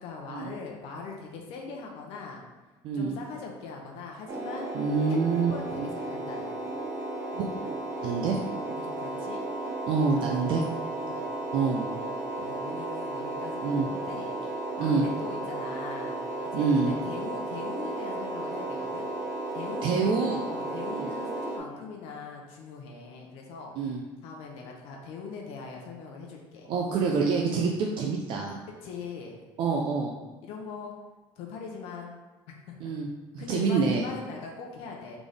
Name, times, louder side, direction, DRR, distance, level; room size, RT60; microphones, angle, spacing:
voice 1, 0.0-2.5 2.9-4.7 5.1-6.7 7.5-7.7 8.7-9.5 10.4-10.7 11.0-11.3 12.3-14.4 14.8-19.1 19.5-23.7 24.2-26.7 28.8-29.4 30.4-30.9 31.4-32.2 32.7-32.9 33.4-35.2, left 4 dB, 70° left, 0 dB, 0.7 m, -41 dB
voice 2, 2.8-3.2 4.7-5.5 5.8-5.9 7.3-7.5 8.0-8.4 9.9-10.6 11.5-11.9 13.6-13.9 14.8-15.1 16.5-16.9 19.8-20.5 20.9-21.1 23.8-24.0 26.7-28.6 29.6-30.1 32.8-33.1 33.3-34.0, right 5 dB, 55° right, 0 dB, 0.5 m, -26 dB
sound 1, 4.3-21.6, right 2 dB, 30° right, 0.9 m, -34 dB
4.0 x 3.5 x 3.4 m, 1.2 s
cardioid pair, 150°, 10 cm